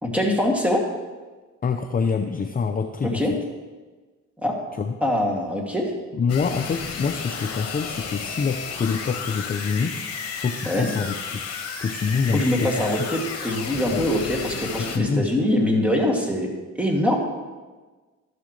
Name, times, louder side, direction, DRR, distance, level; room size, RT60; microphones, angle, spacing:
voice 1, 0.0-0.8 3.0-3.3 4.4-4.5 5.0-5.9 10.6-10.9 12.3-16.5 16.8-17.2, left 1 dB, 5° right, -1 dB, 2.4 m, -23 dB
voice 2, 1.6-3.4 4.8-4.9 6.1-10.0 10.4-11.4 11.8-12.9 13.9-14.1 14.8-15.3, left 5 dB, 30° left, 6 dB, 0.6 m, -26 dB
sound 1, 6.3-15.0, left 6 dB, 55° left, 1.6 m, -33 dB
12.5 x 11.0 x 3.2 m, 1.3 s
cardioid pair, 90°, 30 cm